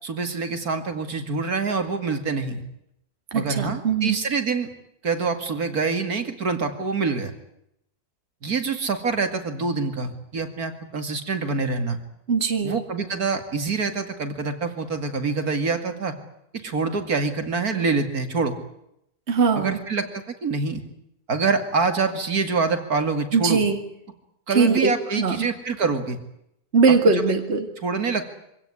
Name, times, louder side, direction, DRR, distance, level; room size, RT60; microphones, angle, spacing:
voice 1, 0.0-2.6 3.3-4.7 5.0-7.3 8.4-12.0 12.6-16.1 16.5-18.6 19.6-20.1 20.4-20.8 21.3-23.6 24.5-26.2 27.8-28.3, right 4 dB, 65° right, 7 dB, 2.8 m, -25 dB
voice 2, 3.3-4.2 12.3-12.8 19.3-19.8 23.3-23.8 24.5-25.5 26.7-27.7, right 5 dB, 40° right, 5 dB, 2.3 m, -21 dB
25.0 x 17.5 x 9.8 m, 0.79 s
omnidirectional pair, 1.7 m